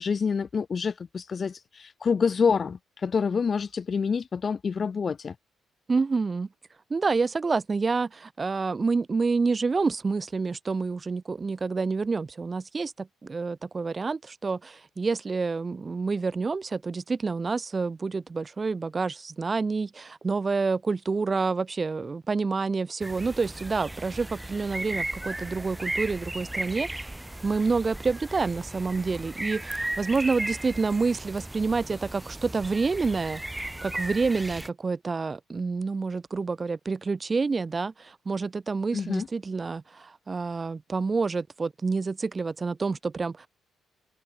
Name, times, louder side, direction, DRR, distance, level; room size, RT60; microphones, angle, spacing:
voice 1, 0.0-5.3 38.9-39.3, left 5 dB, 40° left, 0.6 m, -27 dB
voice 2, 5.9-6.5 6.9-27.1 27.4-43.5, right 4 dB, 30° right, 0.4 m, -28 dB
sound 1, 23.0-34.7, right 1 dB, 10° right, 4.0 m, -36 dB
cardioid pair, 90°, 0 cm